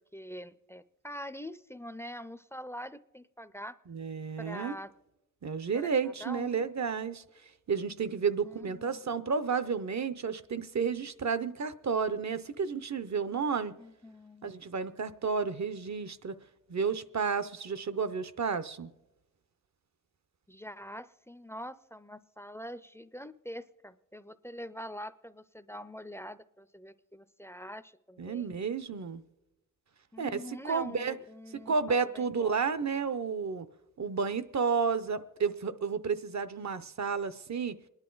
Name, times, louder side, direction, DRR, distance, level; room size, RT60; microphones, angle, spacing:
voice 1, 0.0-3.8 4.4-4.9 5.7-6.7 8.4-9.0 13.6-14.6 20.5-28.6 30.1-32.6, equal, 10° left, 15 dB, 0.4 m, -44 dB
voice 2, 3.9-4.8 5.4-7.2 7.7-13.7 14.4-16.4 16.7-18.9 28.2-29.2 30.2-30.4 30.6-31.2 31.5-33.7 34.0-37.7, right 5 dB, 60° right, 13 dB, 0.6 m, -31 dB
27.5 x 10.5 x 3.9 m, 0.98 s
wide cardioid pair, 90°, 31 cm